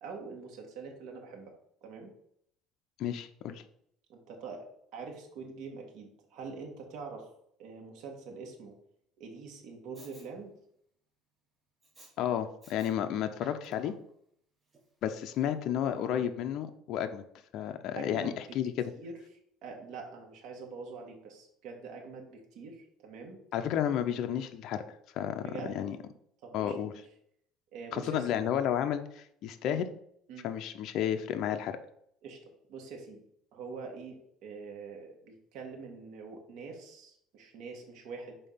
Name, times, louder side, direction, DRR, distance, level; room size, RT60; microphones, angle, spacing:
voice 1, 0.0-1.5 1.8-2.1 4.1-4.7 4.9-7.3 7.6-8.8 9.2-10.5 16.0-16.2 18.0-18.4 19.0-19.2 19.6-23.4 25.4-25.8 26.4-27.0 27.7-28.4 29.7-29.8 30.3-30.5 32.2-32.4 32.7-33.2 33.5-38.4, right 4 dB, 60° right, 1 dB, 1.9 m, -44 dB
voice 2, 3.0-3.6 12.2-13.9 15.0-17.2 17.5-18.9 23.5-24.8 25.1-25.5 25.7-26.0 26.5-26.9 27.9-29.9 30.4-31.8, left 9 dB, 50° left, 7 dB, 0.6 m, -32 dB
Respiratory sounds, 9.9-10.3 11.8-12.1 12.6-12.9 13.3-14.1 14.7-14.8, right 2 dB, 15° right, 1.3 m, -55 dB
5.6 x 4.3 x 5.6 m, 0.70 s
cardioid pair, 150°, 0 cm